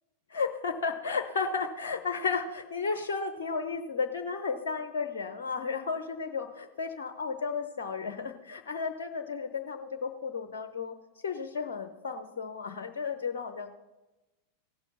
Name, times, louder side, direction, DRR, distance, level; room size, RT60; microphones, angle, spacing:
voice 1, 0.3-11.0 11.2-13.8, left 5 dB, 60° left, 7 dB, 0.7 m, -33 dB
16.0 x 7.1 x 5.6 m, 1.1 s
figure-of-eight pair, 90°, 0 cm